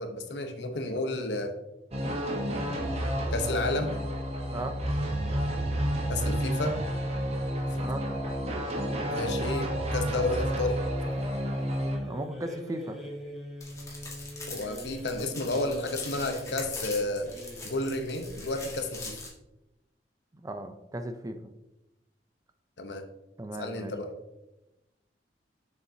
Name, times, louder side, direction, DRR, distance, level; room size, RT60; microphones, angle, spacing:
voice 1, 0.0-1.5 2.4-2.8 3.3-4.0 6.1-6.8 7.7-7.8 9.0-10.8 14.5-17.3 17.6-19.1 22.8-23.0 23.6-24.1, left 2 dB, 75° left, 6 dB, 0.9 m, -31 dB
sound 1, 1.9-12.0, equal, 35° right, 1.1 m, -30 dB
sound 2, 11.0-18.6, left 1 dB, ahead, 1.4 m, -44 dB
voice 2, 12.1-13.0 20.4-21.4 23.4-23.9, right 1 dB, 20° right, 8 dB, 0.5 m, -36 dB
sound 3, 13.6-19.3, left 3 dB, 20° left, 1.7 m, -42 dB
6.9 x 6.8 x 2.8 m, 0.95 s
head